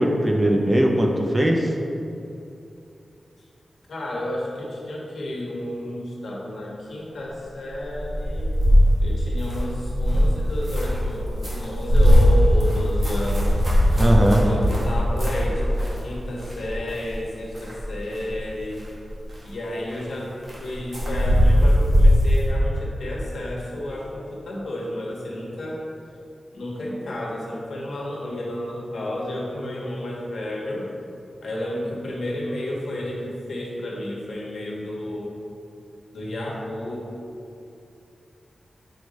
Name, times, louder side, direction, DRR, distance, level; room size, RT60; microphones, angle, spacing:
voice 1, 0.0-1.7 14.0-14.4, right 1 dB, 20° right, 1 dB, 0.5 m, -19 dB
voice 2, 3.9-8.5 9.0-13.6 13.9-14.1 14.4-18.9 19.4-20.3 20.6-25.8 26.5-30.9 31.4-35.3 36.1-37.1, left 1 dB, 80° left, -3 dB, 1.3 m, -31 dB
sound 1, 7.9-16.1 16.4-17.2 17.5-18.4 18.7-19.4 19.9-20.0 20.4-22.5, equal, 40° right, 1.5 m, -20 dB
6.3 x 4.8 x 4.1 m, 2.7 s
wide cardioid pair, 155°, 0 cm